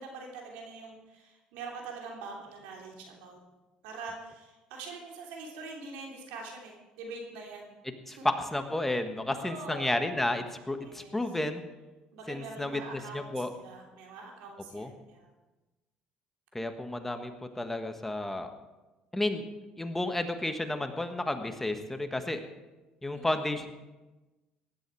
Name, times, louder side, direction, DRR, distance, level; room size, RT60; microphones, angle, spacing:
voice 1, 0.0-3.4 3.8-7.7 8.1-8.3 9.3-10.0 10.8-11.2 12.1-15.3 23.1-23.5, right 3 dB, 85° right, 0 dB, 3.1 m, -44 dB
voice 2, 8.1-11.6 12.3-13.5 14.7-14.9 16.5-18.5 19.1-19.5 19.8-22.5 23.0-23.7, left 1 dB, 10° left, 7 dB, 1.5 m, -32 dB
16.0 x 11.5 x 4.7 m, 1.1 s
supercardioid pair, 85°, 3 cm